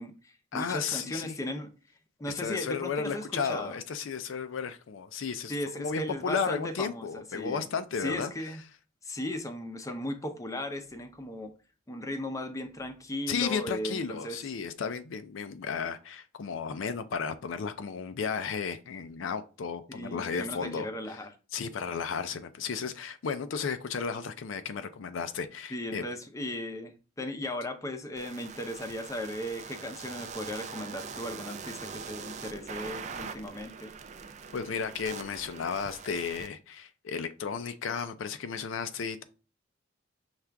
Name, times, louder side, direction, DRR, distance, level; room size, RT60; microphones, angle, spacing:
voice 1, 0.0-1.7 2.2-3.8 5.5-7.6 8.0-8.6 9.0-11.5 11.9-14.4 19.9-21.3 25.7-33.9, left 1 dB, 15° left, 0.5 m, -37 dB
voice 2, 0.5-1.4 2.3-8.3 13.3-21.2 21.5-26.0 34.5-39.2, left 6 dB, 80° left, 0.4 m, -34 dB
sound 1, 28.2-36.5, right 5 dB, 40° right, 0.4 m, -43 dB
5.8 x 2.4 x 3.4 m
head